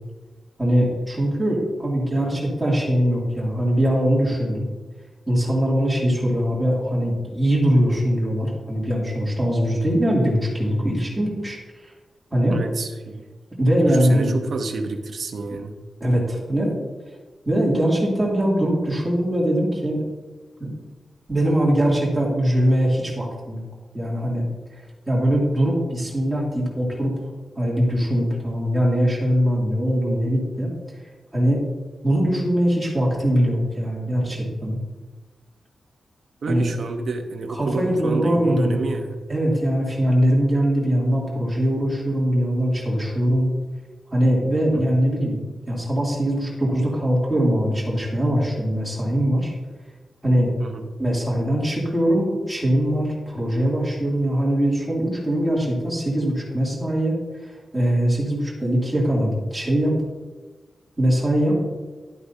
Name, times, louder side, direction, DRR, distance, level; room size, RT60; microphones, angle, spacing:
voice 1, 0.6-4.7 5.3-11.9 12.3-12.6 13.6-14.4 16.0-16.7 17.4-20.0 20.6-20.7 21.3-23.6 23.9-24.4 25.1-27.2 27.6-30.7 31.3-31.6 32.0-34.8 36.5-36.6 37.5-38.8 39.3-43.5 44.1-45.4 45.7-49.5 50.2-50.5 51.0-59.9 61.0-61.6, equal, 10° right, -5 dB, 2.5 m, -21 dB
voice 2, 12.5-13.3 13.8-15.7 36.4-39.1 44.7-45.0 50.6-50.9, right 3 dB, 60° right, 5 dB, 0.9 m, -29 dB
11.5 x 8.5 x 2.8 m, 1.3 s
wide cardioid pair, 170°, 0 cm